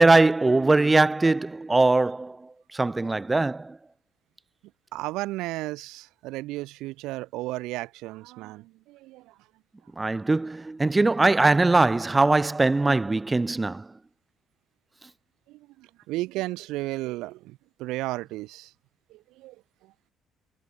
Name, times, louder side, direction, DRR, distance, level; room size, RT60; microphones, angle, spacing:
voice 1, 0.0-3.8 10.0-13.9, right 2 dB, 15° right, 0.8 m, -21 dB
voice 2, 4.9-9.2 15.5-18.7 19.1-19.5, right 19 dB, 90° right, 1.3 m, -34 dB
cardioid pair, 120°, 0 cm